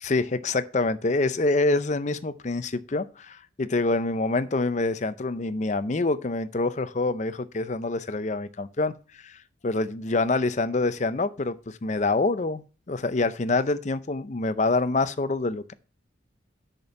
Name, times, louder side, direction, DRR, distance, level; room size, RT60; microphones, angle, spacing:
voice 1, 0.0-8.9 9.2-9.3 9.6-15.7, left 3 dB, 40° left, 0.5 m, -26 dB
6.7 x 5.2 x 6.9 m
head